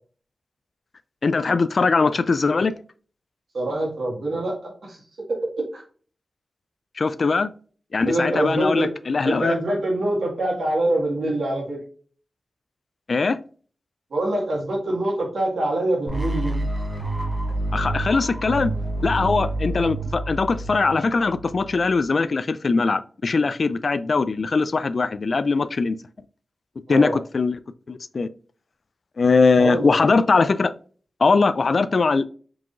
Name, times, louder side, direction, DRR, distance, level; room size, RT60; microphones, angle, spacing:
voice 1, 1.2-2.7 7.0-7.5 7.9-9.6 13.1-13.4 17.7-18.7 19.0-26.0 26.9-27.6 27.9-28.3 29.2-30.7 31.2-32.2, left 4 dB, 65° left, 0.3 m, -21 dB
voice 2, 3.5-5.0 5.3-5.8 8.1-8.9 9.2-11.8 14.1-16.6 26.9-27.2 29.6-29.9, right 1 dB, 80° right, 1.7 m, -25 dB
sound 1, 16.1-22.0, right 2 dB, 20° right, 1.1 m, -28 dB
4.6 x 3.6 x 2.4 m
cardioid pair, 45°, 0 cm